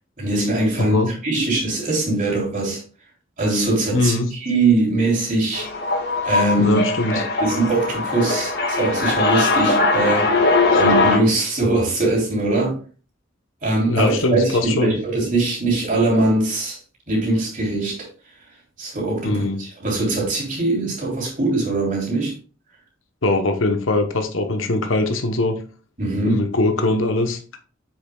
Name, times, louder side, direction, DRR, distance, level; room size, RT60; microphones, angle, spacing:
voice 1, 0.2-2.8 3.4-5.7 6.2-6.8 7.1-10.4 10.8-12.8 13.6-16.8 17.1-18.1 18.8-22.3 26.0-26.4, right 2 dB, 40° right, 3.5 m, -21 dB
voice 2, 0.8-1.1 3.9-4.3 6.6-7.2 10.7-10.8 13.9-14.9 19.2-19.6 23.2-25.6 26.3-27.4, left 2 dB, 75° left, 1.0 m, -21 dB
sound 1, 5.5-11.2, left 3 dB, 55° left, 1.5 m, -20 dB
8.0 x 6.7 x 2.3 m
head